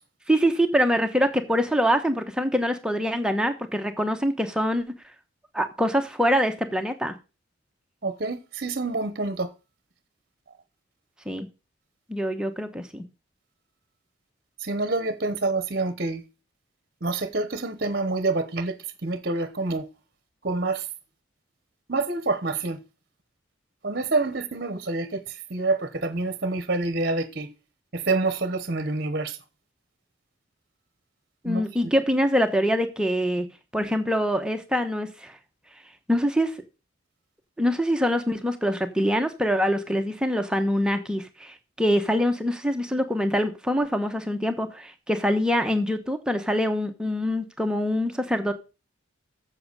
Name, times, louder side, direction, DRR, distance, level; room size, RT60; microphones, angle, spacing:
voice 1, 0.3-4.9 5.5-7.1 11.3-11.5 12.1-13.0 31.4-33.5 33.7-35.4 36.1-36.5 37.6-48.5, equal, 5° right, 1.0 m, -24 dB
voice 2, 8.0-9.5 14.6-16.2 17.0-18.8 19.0-19.9 20.4-20.9 21.9-22.8 23.8-27.5 27.9-29.4 31.4-31.6, right 3 dB, 45° right, 1.0 m, -27 dB
7.8 x 7.3 x 6.7 m
head